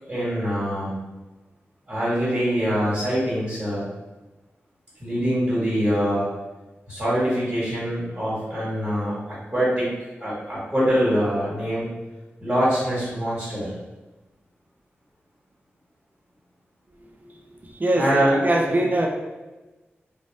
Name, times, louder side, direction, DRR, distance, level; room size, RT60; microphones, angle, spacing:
voice 1, 0.0-1.0 1.9-3.8 5.0-6.3 6.9-9.2 9.5-9.9 10.2-11.9 12.4-13.7 17.9-18.3 18.7-18.8, equal, 25° right, -9 dB, 1.4 m, -24 dB
voice 2, 17.7-19.1, right 1 dB, 40° right, 2 dB, 0.5 m, -21 dB
2.6 x 2.0 x 3.2 m, 1.1 s
cardioid pair, 50°, 5 cm